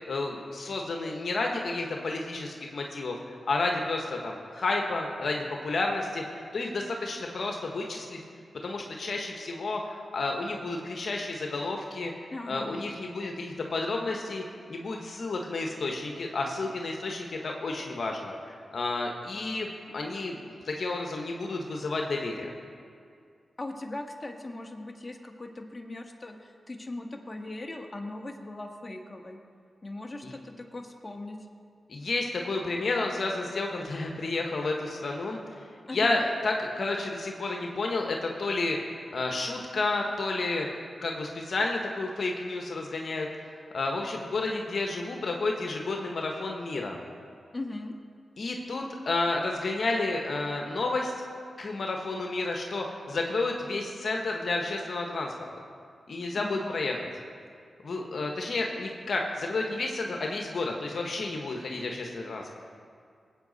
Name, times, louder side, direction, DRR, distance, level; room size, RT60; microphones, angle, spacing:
voice 1, 0.1-6.2 6.5-8.2 8.6-12.1 12.5-20.4 20.6-22.5 30.2-30.3 31.9-35.4 35.9-38.8 39.1-40.7 41.0-43.3 43.7-47.0 48.4-51.1 51.6-55.3 56.1-57.0 57.8-62.4, left 3 dB, 65° left, 1 dB, 1.3 m, -31 dB
voice 2, 12.3-12.8 23.6-29.4 29.8-31.4 35.9-36.2 47.5-47.9 56.3-56.9, left 2 dB, 30° left, 2 dB, 1.6 m, -39 dB
19.5 x 8.4 x 4.2 m, 2.3 s
cardioid pair, 45°, 0 cm